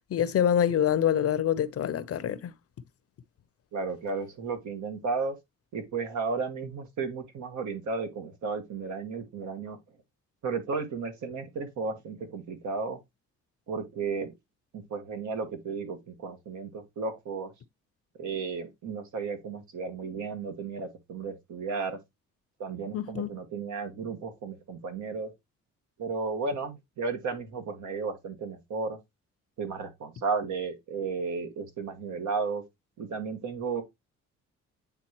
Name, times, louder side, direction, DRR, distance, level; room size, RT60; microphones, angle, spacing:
voice 1, 0.1-2.5 22.9-23.3, left 9 dB, 50° left, 0.6 m, -26 dB
voice 2, 3.7-5.3 5.7-9.8 10.4-13.0 13.7-14.3 14.7-17.5 18.2-22.0 22.6-25.3 26.0-29.0 29.6-32.6 33.0-33.8, right 4 dB, 70° right, 1.8 m, -34 dB
8.8 x 3.7 x 3.0 m
cardioid pair, 90°, 30 cm